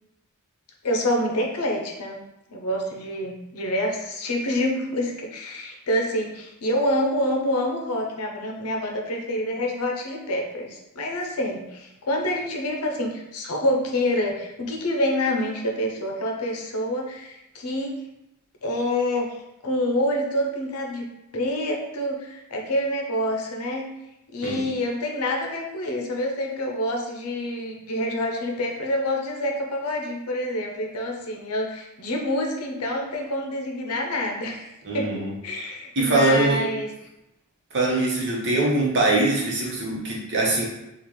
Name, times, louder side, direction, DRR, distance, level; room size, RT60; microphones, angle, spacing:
voice 1, 0.8-2.2 2.5-18.0 18.6-19.4 19.6-21.1 21.3-23.9 24.3-35.2 35.4-36.9, left 1 dB, 80° left, 1 dB, 0.7 m, -27 dB
voice 2, 34.8-35.3 36.0-36.6 37.7-40.6, right 2 dB, 55° right, -3 dB, 0.9 m, -22 dB
3.9 x 2.4 x 3.1 m, 0.90 s
head